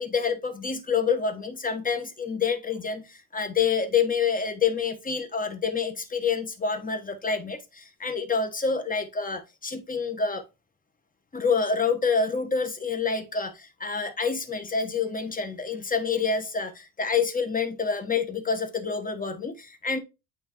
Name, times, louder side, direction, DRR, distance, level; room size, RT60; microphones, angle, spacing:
voice 1, 0.0-10.4 11.3-20.0, left 5 dB, 20° left, 1.3 m, -27 dB
8.8 x 3.7 x 3.1 m
hypercardioid pair, 65°, 42 cm